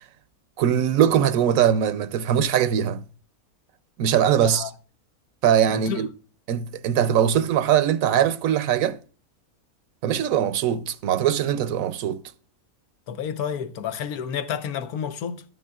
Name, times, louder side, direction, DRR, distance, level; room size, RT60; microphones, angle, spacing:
voice 1, 0.6-3.0 4.0-4.7 5.4-6.1 6.5-9.0 10.0-12.2, right 9 dB, 75° right, 1.0 m, -21 dB
voice 2, 5.7-6.0 13.1-15.4, left 8 dB, 90° left, 1.3 m, -30 dB
12.5 x 9.2 x 2.3 m
omnidirectional pair, 1.5 m